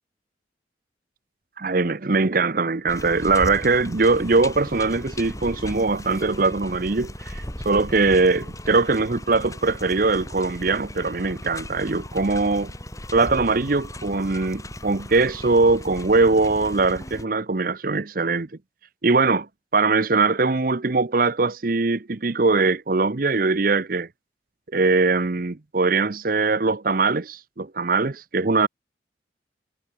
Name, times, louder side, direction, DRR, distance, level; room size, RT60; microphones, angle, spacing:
voice 1, 1.6-12.7 13.1-18.5 19.0-19.5 19.7-24.1 24.7-28.7, right 3 dB, 50° right, 0.8 m, -21 dB
sound 1, 2.9-17.2, left 1 dB, 15° left, 3.7 m, -37 dB
head